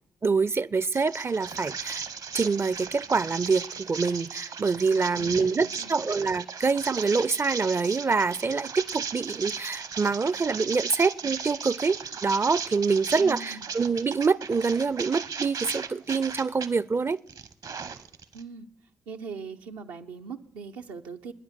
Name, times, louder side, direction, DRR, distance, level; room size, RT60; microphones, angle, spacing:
voice 1, 0.2-2.0 2.3-17.2, right 4 dB, 35° right, 0.4 m, -26 dB
sound 1, 0.9-16.7 17.1-18.4, right 6 dB, 65° right, 1.0 m, -36 dB
voice 2, 5.1-6.1 13.2-13.7 18.3-18.7 19.1-21.3, right 5 dB, 85° right, 0.7 m, -41 dB
10.0 x 9.8 x 7.4 m
hypercardioid pair, 45°, 7 cm